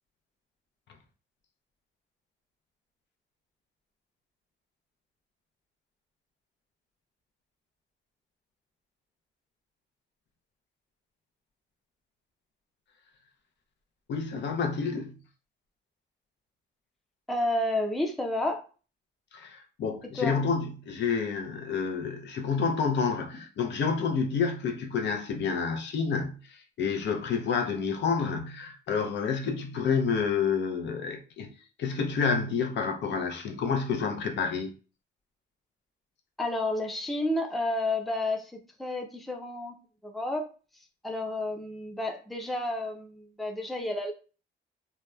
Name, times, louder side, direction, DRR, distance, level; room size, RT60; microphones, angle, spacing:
voice 1, 14.1-15.2 19.3-31.5 31.8-34.7, left 5 dB, 65° left, 0.6 m, -29 dB
voice 2, 17.3-18.6 20.1-20.3 36.4-38.5 38.8-39.7 40.0-40.4 41.0-44.1, left 1 dB, ahead, 0.5 m, -30 dB
2.8 x 2.1 x 2.3 m
cardioid pair, 90°, 20 cm